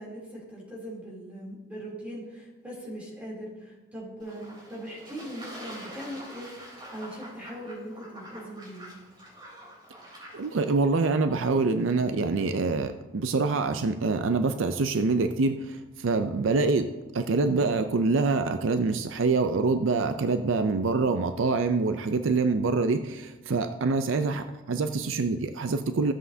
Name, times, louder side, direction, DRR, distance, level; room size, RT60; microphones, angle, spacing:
voice 1, 0.0-6.5 6.9-8.9, equal, 5° right, -5 dB, 3.0 m, -40 dB
Fowl / Bird / Water, 4.2-10.7, equal, 25° right, 3.4 m, -46 dB
voice 2, 10.3-26.1, right 3 dB, 70° right, 8 dB, 0.5 m, -25 dB
15.0 x 7.7 x 2.7 m, 1.1 s
head